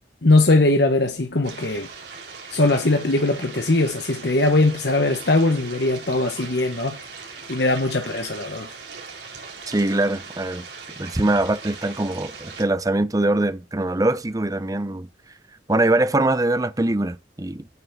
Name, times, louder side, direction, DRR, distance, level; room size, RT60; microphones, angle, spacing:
voice 1, 0.2-1.9 2.5-7.0 7.5-8.7, left 2 dB, 65° left, 1.2 m, -20 dB
sound 1, 1.4-12.6, right 5 dB, 70° right, 4.0 m, -39 dB
voice 2, 9.7-10.7 11.0-15.1 15.7-17.7, right 2 dB, 20° right, 0.6 m, -22 dB
9.5 x 5.6 x 7.0 m
head